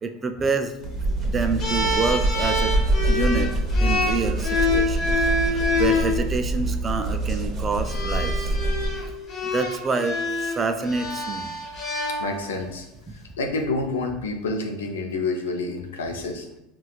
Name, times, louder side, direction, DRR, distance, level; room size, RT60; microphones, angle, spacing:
voice 1, 0.0-0.7 1.2-2.7 3.1-8.5 9.5-11.5, right 4 dB, 25° right, 7 dB, 0.3 m, -27 dB
sound 1, 0.8-9.1, right 2 dB, 40° right, 0.8 m, -25 dB
sound 2, 1.6-6.1 7.1-7.3 7.8-12.7, left 2 dB, 45° left, 1.0 m, -26 dB
voice 2, 12.2-12.9 13.4-16.5, left 3 dB, 90° left, 4 dB, 0.5 m, -28 dB
4.1 x 2.2 x 2.4 m, 0.89 s
hypercardioid pair, 90°, 0 cm